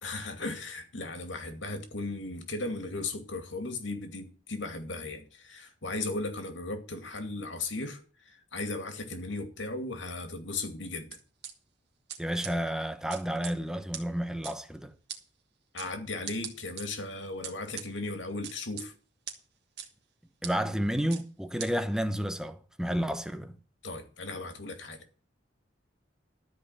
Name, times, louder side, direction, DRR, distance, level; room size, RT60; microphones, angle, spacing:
voice 1, 0.0-11.1 15.7-18.9 23.8-25.0, left 2 dB, 90° left, 2.4 m, -36 dB
sound 1, 11.1-11.5 12.1-12.2 12.4-12.5 13.1-13.5 13.9-14.0 14.4-14.5 15.1-15.2 15.8-15.9 16.3-16.8 17.4-17.9 18.4-18.9 19.3-19.4 19.8-19.9 20.4-20.5 21.1-21.2 21.6-21.7, right 9 dB, 65° right, 2.1 m, -39 dB
voice 2, 12.2-14.9 20.4-23.6, equal, 5° right, 0.9 m, -31 dB
13.0 x 5.2 x 8.8 m
head